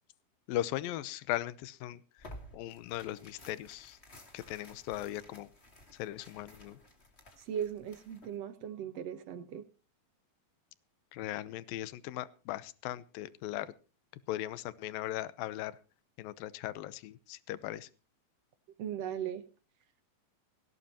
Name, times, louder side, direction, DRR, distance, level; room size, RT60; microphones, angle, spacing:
voice 1, 0.5-2.0 2.5-4.0 4.3-5.5 6.0-6.8 11.1-13.7 14.3-15.8 16.2-17.9, left 14 dB, 80° left, 16 dB, 2.6 m, -38 dB
Tearing, 2.2-8.4, left 1 dB, 20° left, 2.4 m, -54 dB
voice 2, 7.5-9.6 18.8-19.4, right 9 dB, 65° right, 11 dB, 1.8 m, -38 dB
19.0 x 17.0 x 2.9 m, 0.35 s
omnidirectional pair, 4.1 m